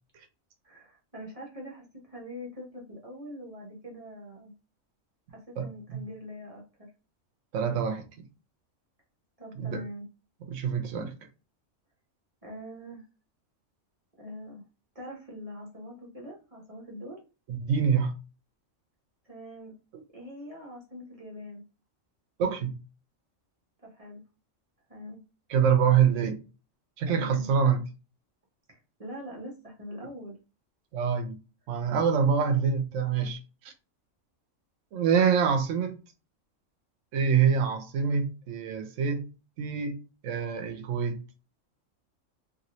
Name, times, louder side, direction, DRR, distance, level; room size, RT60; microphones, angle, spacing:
voice 1, 0.6-4.5 5.3-6.9 9.4-10.1 12.4-13.1 14.2-14.6 14.9-17.2 19.2-19.7 20.1-21.6 23.9-24.2 24.9-25.2 27.1-27.5 28.7-30.4, equal, 30° right, 0.9 m, -43 dB
voice 2, 5.6-6.0 7.5-8.3 9.5-9.8 10.4-11.1 17.5-18.1 22.4-22.8 25.5-26.4 27.0-27.9 30.9-31.4 31.7-33.7 34.9-36.0 37.1-39.2 39.6-41.2, right 7 dB, 75° right, 1.0 m, -26 dB
3.0 x 2.7 x 3.0 m
omnidirectional pair, 1.3 m